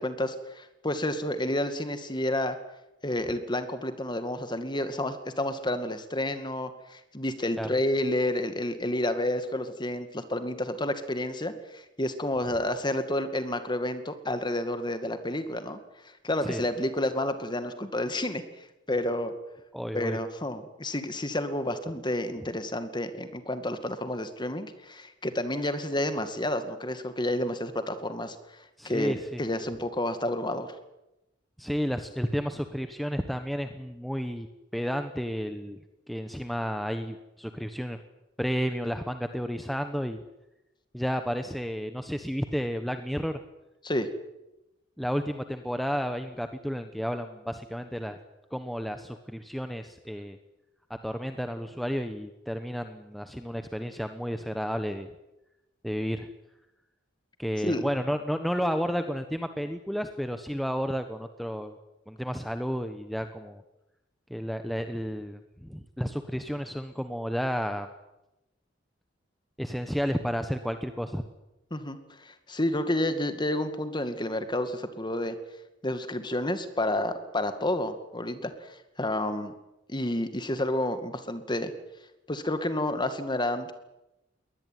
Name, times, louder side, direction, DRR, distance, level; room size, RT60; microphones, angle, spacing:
voice 1, 0.0-2.6 3.0-15.8 16.2-18.4 18.9-19.3 19.9-28.4 28.8-30.7 43.8-44.1 57.6-57.8 71.7-75.4 75.8-79.5 79.9-81.7 82.3-83.7, left 1 dB, 25° left, 9 dB, 2.2 m, -30 dB
voice 2, 19.7-20.2 22.3-22.4 28.8-29.4 31.6-34.5 34.7-35.8 36.1-38.0 38.4-40.2 40.9-43.4 45.0-48.2 48.5-50.4 51.0-55.1 55.8-56.3 57.4-61.8 62.1-63.6 64.3-67.9 69.6-71.2, equal, ahead, 7 dB, 1.1 m, -32 dB
22.5 x 19.0 x 9.4 m, 0.93 s
head